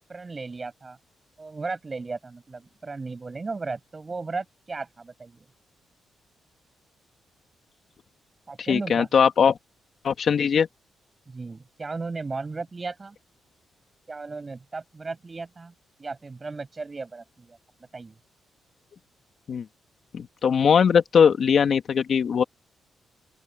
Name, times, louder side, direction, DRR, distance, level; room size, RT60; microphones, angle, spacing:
voice 1, 0.1-1.0 1.4-5.5 8.5-9.1 11.3-13.2 14.1-15.7 16.0-17.6 17.9-18.2, right 3 dB, 30° right, 7.6 m, -35 dB
voice 2, 8.7-9.6 10.0-10.7 19.5-19.7 20.1-22.4, left 7 dB, 55° left, 2.3 m, -20 dB
open air
cardioid pair, 95°, 0 cm